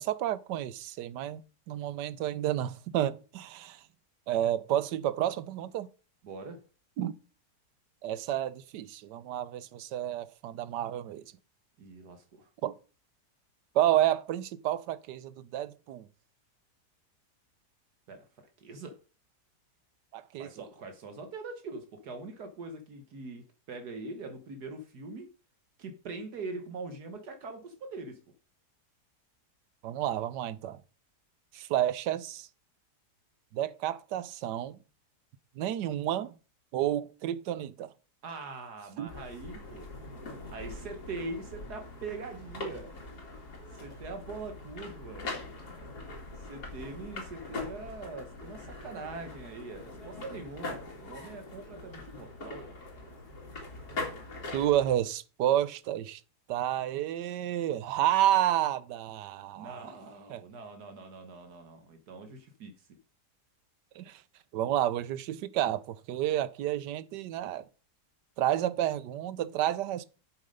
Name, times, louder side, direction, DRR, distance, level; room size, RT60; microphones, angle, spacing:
voice 1, 0.0-3.8 4.3-5.9 7.0-7.1 8.0-11.3 12.6-12.7 13.7-16.1 20.1-20.7 29.8-30.8 31.5-32.5 33.5-34.8 35.6-36.3 36.7-37.9 39.0-39.1 54.5-56.2 56.5-59.8 60.3-60.4 64.0-64.2 64.5-67.7 68.4-70.1, right 12 dB, 90° right, 1.3 m, -30 dB
voice 2, 6.2-6.6 11.8-12.5 18.1-19.0 20.4-25.3 25.8-28.2 38.2-40.0 40.5-43.0 43.8-45.4 46.4-52.8 59.6-62.7, right 3 dB, 70° right, 1.7 m, -42 dB
sound 1, 39.1-55.0, left 2 dB, 65° left, 2.9 m, -42 dB
7.6 x 7.3 x 5.2 m
omnidirectional pair, 1.8 m